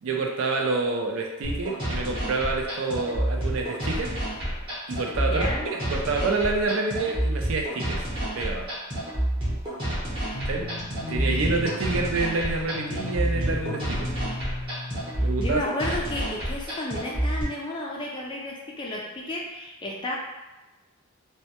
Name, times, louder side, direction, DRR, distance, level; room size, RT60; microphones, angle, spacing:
voice 1, 0.0-4.2 4.9-5.5 5.9-8.7 10.5-10.7 11.1-14.1 15.2-15.6, right 3 dB, 60° right, 2 dB, 0.4 m, -28 dB
sound 1, 1.4-17.4, right 1 dB, 25° right, 0.8 m, -29 dB
voice 2, 5.2-5.7 10.2-10.4 11.3-11.7 15.4-20.2, left 1 dB, 20° left, -2 dB, 0.3 m, -33 dB
sound 2, 10.3-15.5, left 2 dB, 80° left, 0.6 m, -36 dB
2.1 x 2.1 x 2.8 m, 1.1 s
head